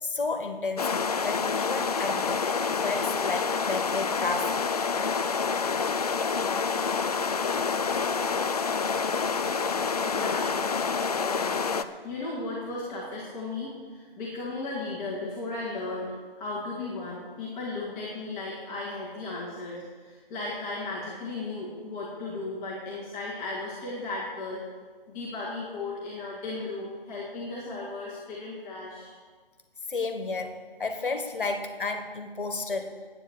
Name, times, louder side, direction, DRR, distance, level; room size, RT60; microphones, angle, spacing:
voice 1, 0.0-4.6 29.9-33.0, left 3 dB, 65° left, 6 dB, 1.8 m, -32 dB
sound 1, 0.8-11.8, left 5 dB, 40° left, 0.6 m, -27 dB
voice 2, 10.1-10.6 11.2-11.7 12.0-24.6 25.1-29.1, left 3 dB, 10° left, -8 dB, 2.1 m, -35 dB
11.0 x 9.1 x 7.8 m, 1.5 s
figure-of-eight pair, 155°, 29 cm